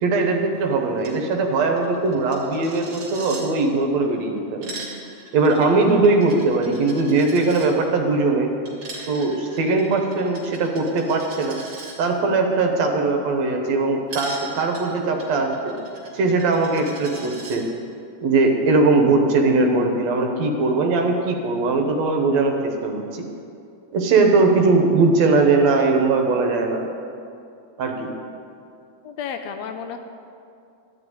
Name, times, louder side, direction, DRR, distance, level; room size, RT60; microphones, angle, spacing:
voice 1, 0.0-4.9 5.3-8.5 9.1-11.6 12.0-15.8 16.1-17.7 18.2-23.3 23.9-26.9 27.8-28.1, right 3 dB, 70° right, 3 dB, 2.2 m, -20 dB
Coin (dropping), 1.0-1.2 1.4-1.5 1.8-3.4 4.4-7.7 8.7-11.9 14.1-17.6, right 2 dB, 40° right, 2.7 m, -39 dB
voice 2, 29.0-30.0, left 7 dB, 75° left, 7 dB, 1.7 m, -32 dB
13.0 x 5.9 x 9.5 m, 2.5 s
omnidirectional pair, 3.3 m